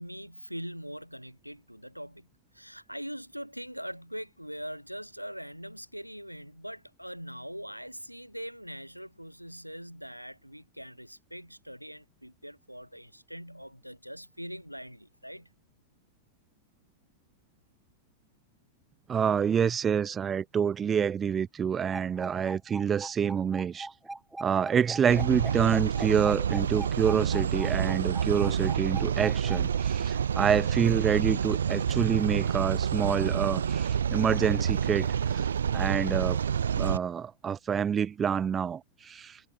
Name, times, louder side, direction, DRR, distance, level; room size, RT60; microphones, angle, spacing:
voice 1, 0.0-2.3 2.5-15.5, equal, 90° right, 8.0 m, -42 dB
voice 2, 19.1-23.9 24.4-35.5 35.7-36.4 36.7-39.4, right 7 dB, 20° right, 3.0 m, -27 dB
sound 1, 21.9-29.8, right 2 dB, 5° right, 3.1 m, -41 dB
sound 2, 25.1-37.0, right 8 dB, 70° right, 1.8 m, -28 dB
figure-of-eight pair, 90°, 0 cm